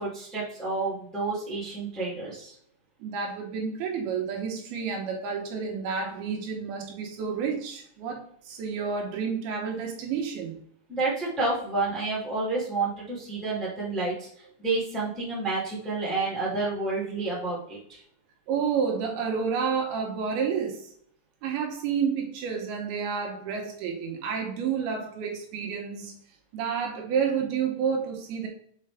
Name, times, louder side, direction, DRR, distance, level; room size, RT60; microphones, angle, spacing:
voice 1, 0.0-2.5 10.9-18.0, right 3 dB, ahead, -6 dB, 1.5 m, -30 dB
voice 2, 3.0-10.5 18.5-20.9 21.4-26.2 26.5-28.5, right 6 dB, 75° right, 1 dB, 2.9 m, -30 dB
6.7 x 4.7 x 3.4 m, 0.63 s
omnidirectional pair, 4.7 m